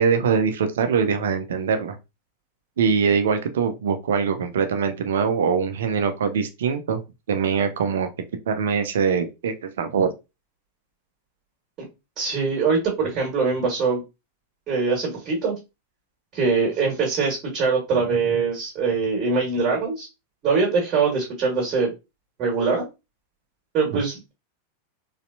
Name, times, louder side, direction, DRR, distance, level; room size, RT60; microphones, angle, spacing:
voice 1, 0.0-2.0 2.8-7.0 7.3-8.1 8.5-10.1 23.9-24.0, right 6 dB, 60° right, 0.6 m, -23 dB
voice 2, 12.2-14.0 14.7-15.6 16.3-20.1 20.4-21.9 22.4-22.9 23.7-24.3, right 4 dB, 30° right, 1.8 m, -23 dB
4.1 x 3.3 x 2.7 m
figure-of-eight pair, 90°, 0 cm